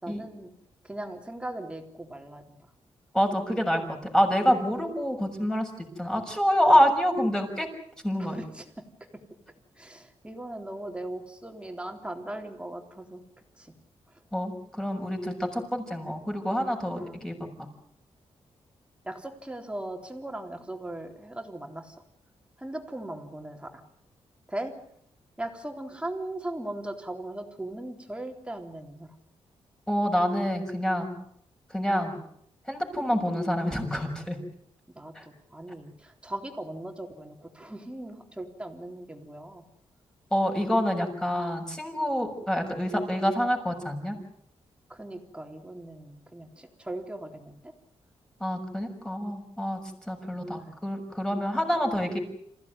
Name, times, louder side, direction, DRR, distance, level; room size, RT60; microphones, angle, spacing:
voice 1, 0.0-0.5 0.8-2.6 8.2-8.7 9.8-13.2 13.6-13.7 17.0-17.2 19.0-22.0 22.6-23.8 24.5-24.7 25.4-29.1 34.9-39.6 44.9-47.7 50.4-50.8 51.9-52.0, right 1 dB, 10° right, 4 dB, 3.7 m, -39 dB
voice 2, 3.1-5.7 6.0-7.7 8.0-8.4 14.3-17.5 29.9-31.2 31.7-32.2 32.7-34.4 35.1-35.2 40.3-44.2 48.4-49.8 50.1-52.2, equal, 5° left, 2 dB, 6.6 m, -27 dB
27.5 x 16.0 x 9.7 m, 0.71 s
cardioid pair, 115°, 10 cm